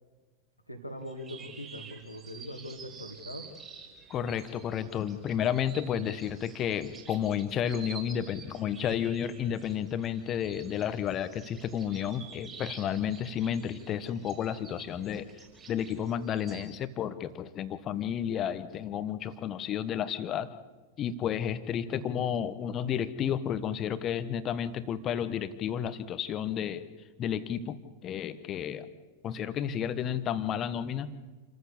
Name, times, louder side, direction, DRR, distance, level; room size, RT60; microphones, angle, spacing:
voice 1, 0.7-3.5, equal, 90° left, 1 dB, 2.5 m, -41 dB
sound 1, 1.0-16.7, right 5 dB, 20° right, 5.6 m, -50 dB
voice 2, 4.1-15.3 15.7-20.5 21.0-26.8 27.2-28.9 29.2-31.1, left 9 dB, 30° left, 13 dB, 1.3 m, -32 dB
28.0 x 14.5 x 8.4 m, 1.3 s
figure-of-eight pair, 90°, 0 cm